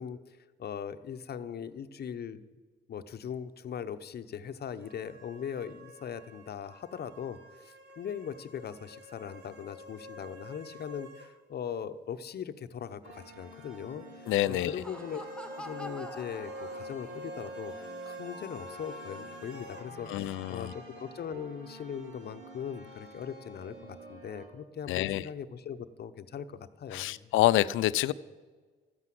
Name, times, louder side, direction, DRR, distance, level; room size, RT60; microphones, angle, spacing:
voice 1, 0.0-2.5 2.9-15.2 15.6-27.3, left 8 dB, 55° left, 10 dB, 0.9 m, -40 dB
sound 1, 4.8-11.3 11.6-11.7 14.8-19.9, equal, 60° right, 2.0 m, -47 dB
sound 2, 13.0-24.5, right 1 dB, 80° right, 2.8 m, -50 dB
Laughter, 14.1-17.3, left 2 dB, 5° left, 0.9 m, -46 dB
voice 2, 14.3-14.7 20.1-20.7 24.9-25.2 26.9-28.1, left 15 dB, 85° left, 17 dB, 0.5 m, -27 dB
12.5 x 9.9 x 7.7 m, 1.4 s
cardioid pair, 90°, 20 cm